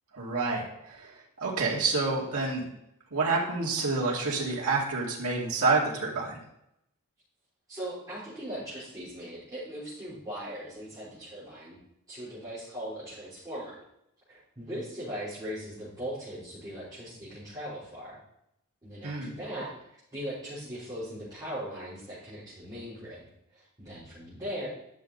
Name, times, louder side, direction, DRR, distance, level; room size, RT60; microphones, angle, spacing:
voice 1, 0.1-2.6 3.1-6.4 19.0-19.3, right 3 dB, 80° right, -4 dB, 2.4 m, -28 dB
voice 2, 7.7-11.8 12.1-13.8 14.3-18.2 18.8-24.7, equal, 20° right, -13 dB, 3.9 m, -39 dB
11.0 x 6.5 x 4.1 m, 0.79 s
head